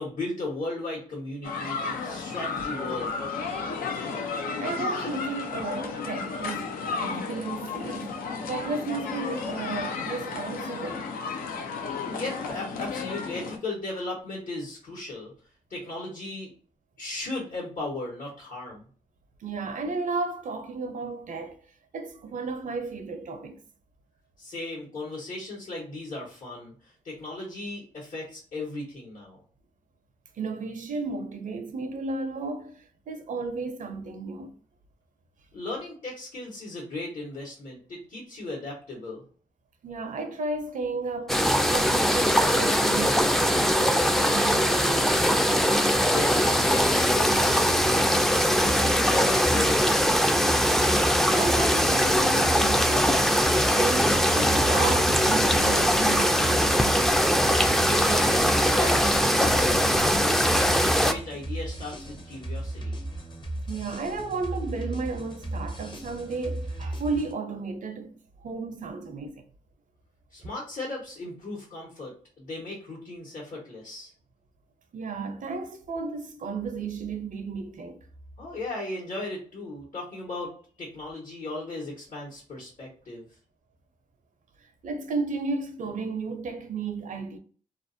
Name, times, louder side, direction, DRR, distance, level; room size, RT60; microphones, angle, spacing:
voice 1, 0.0-3.2 9.4-9.5 11.8-15.3 15.7-16.5 17.0-18.8 24.4-29.4 35.5-39.2 46.1-48.1 48.6-50.3 57.8-60.1 60.5-63.0 70.3-74.1 78.4-80.5 80.8-83.3, left 2 dB, 65° left, 1.1 m, -36 dB
sound 1, 1.4-13.6, left 4 dB, 85° left, 0.4 m, -33 dB
voice 2, 4.6-8.1 8.5-11.1 19.4-21.6 21.9-23.6 30.3-34.5 39.8-45.7 51.3-57.0 63.7-69.4 74.9-78.0 84.8-87.4, right 4 dB, 65° right, 0.5 m, -33 dB
sound 2, 41.3-61.1, equal, ahead, 0.3 m, -22 dB
sound 3, 48.6-67.3, right 1 dB, 35° left, 0.7 m, -36 dB
2.5 x 2.0 x 2.6 m
cardioid pair, 50°, 14 cm